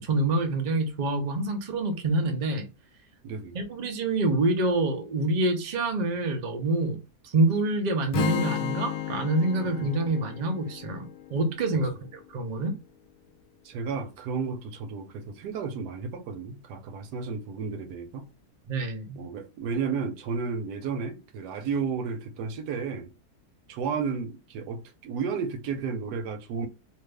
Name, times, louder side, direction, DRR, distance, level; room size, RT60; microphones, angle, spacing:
voice 1, 0.0-2.7 3.5-7.0 7.3-11.1 11.3-12.7 18.7-19.2, right 2 dB, 60° right, 0.4 m, -26 dB
voice 2, 3.2-3.6 13.6-18.3 19.1-23.1 23.7-26.7, right 5 dB, 80° right, 1.2 m, -32 dB
Strum, 8.1-12.3, left 10 dB, 85° left, 1.2 m, -33 dB
2.7 x 2.5 x 3.3 m
omnidirectional pair, 1.7 m